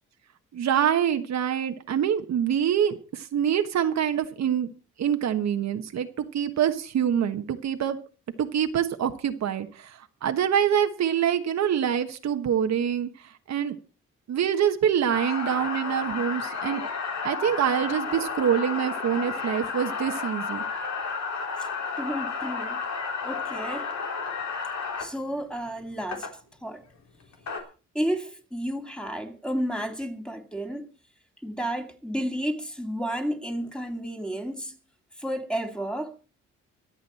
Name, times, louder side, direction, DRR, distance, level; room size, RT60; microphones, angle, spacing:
voice 1, 0.5-4.7 5.0-8.0 8.4-13.7 14.3-16.8 17.2-20.6, right 9 dB, 60° right, 1.3 m, -25 dB
sound 1, 15.1-25.1 26.1-26.3 27.2-27.6, left 5 dB, 65° left, 3.4 m, -32 dB
voice 2, 22.0-22.8 23.2-23.9 25.0-26.3 26.6-26.8 27.9-30.9 31.4-34.8 35.2-36.1, equal, 5° left, 2.4 m, -31 dB
25.0 x 8.3 x 4.2 m
cardioid pair, 90°, 30 cm